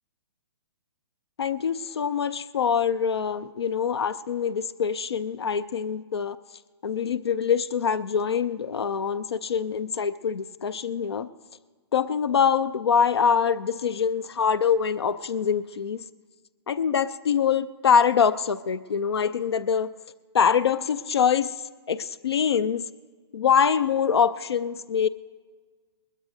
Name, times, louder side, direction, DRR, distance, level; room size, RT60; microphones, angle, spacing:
voice 1, 1.4-6.4 6.8-11.3 11.9-16.0 16.7-19.9 20.3-21.5 21.9-22.8 23.3-25.1, left 7 dB, 75° left, 13 dB, 0.5 m, -24 dB
20.5 x 20.5 x 2.7 m, 1.5 s
figure-of-eight pair, 125°, 13 cm